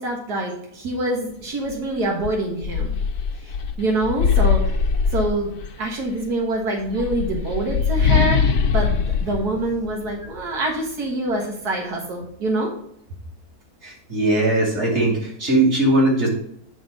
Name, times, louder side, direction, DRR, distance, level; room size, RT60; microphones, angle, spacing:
voice 1, 0.0-2.9 3.4-3.5 3.8-4.6 5.1-5.5 5.8-12.7, right 2 dB, 90° right, 0 dB, 2.0 m, -25 dB
sound 1, 1.7-1.8 2.2-5.9 6.8-10.4, left 6 dB, 80° left, 1.3 m, -22 dB
voice 2, 13.8-16.3, right 2 dB, 45° right, -3 dB, 2.8 m, -19 dB
9.4 x 3.8 x 5.3 m, 0.72 s
omnidirectional pair, 1.6 m